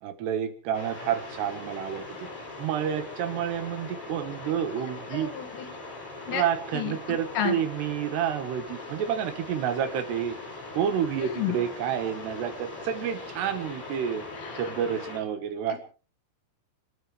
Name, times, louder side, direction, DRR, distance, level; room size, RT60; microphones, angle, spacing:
voice 1, 0.0-2.3 2.6-5.3 6.3-10.4 10.7-14.2 14.5-15.8, right 9 dB, 70° right, 9 dB, 3.2 m, -29 dB
sound 1, 0.7-15.2, left 3 dB, 75° left, 8.2 m, -41 dB
voice 2, 5.1-5.8 6.3-6.4 6.7-7.6 11.2-11.6 14.3-14.7, left 10 dB, 90° left, 6 dB, 4.7 m, -32 dB
30.0 x 13.0 x 3.3 m, 0.37 s
omnidirectional pair, 5.5 m